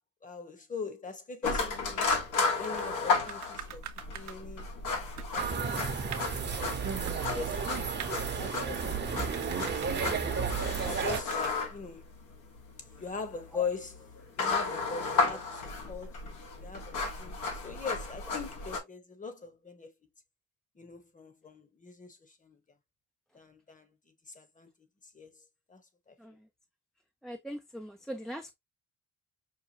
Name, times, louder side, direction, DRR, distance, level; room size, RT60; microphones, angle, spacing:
voice 1, 0.2-2.1 2.6-3.8 4.1-4.7 5.1-6.1 7.2-8.1 8.4-9.3 9.8-12.1 13.0-13.9 14.4-15.6 15.9-16.2 16.6-19.9 20.8-22.6 23.3-23.9 24.3-24.7 25.1-25.4 25.7-25.8 26.1-26.2, left 5 dB, 25° left, 1.1 m, -41 dB
sound 1, 1.4-18.8, left 4 dB, 80° left, 1.5 m, -34 dB
sound 2, 2.6-2.9 3.3-4.4 4.9-5.0 5.2-6.4 7.1-7.6 8.0-8.1 9.2-10.1 11.0-11.5, right 10 dB, 70° right, 0.7 m, -44 dB
sound 3, 5.4-11.2, right 6 dB, 35° right, 0.9 m, -33 dB
voice 2, 26.2-26.5 27.2-28.5, equal, ahead, 0.5 m, -41 dB
5.6 x 2.2 x 2.8 m
cardioid pair, 90°, 30 cm